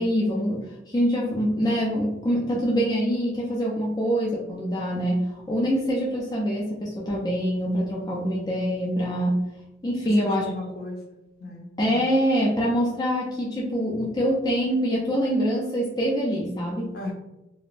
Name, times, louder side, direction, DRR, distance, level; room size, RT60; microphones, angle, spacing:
voice 1, 0.0-9.4 9.8-10.4 11.8-16.9, equal, 20° left, -4 dB, 0.3 m, -25 dB
voice 2, 10.2-11.7 16.9-17.1, left 1 dB, 55° left, 0 dB, 0.6 m, -34 dB
2.4 x 2.0 x 3.2 m, 0.96 s
head